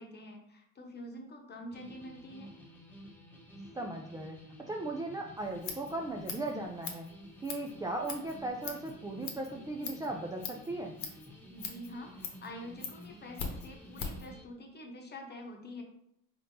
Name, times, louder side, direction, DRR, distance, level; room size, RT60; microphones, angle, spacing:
voice 1, 0.0-2.5 11.5-15.8, left 1 dB, 30° left, 2 dB, 1.0 m, -46 dB
sound 1, 1.7-14.4, equal, 5° left, 1.0 m, -52 dB
voice 2, 3.7-4.4 4.7-7.1 7.4-10.9, right 2 dB, 10° right, 1 dB, 0.3 m, -37 dB
Scissors, 5.4-14.3, left 5 dB, 55° left, 1.0 m, -43 dB
4.2 x 3.4 x 2.7 m, 0.72 s
supercardioid pair, 85°, 33 cm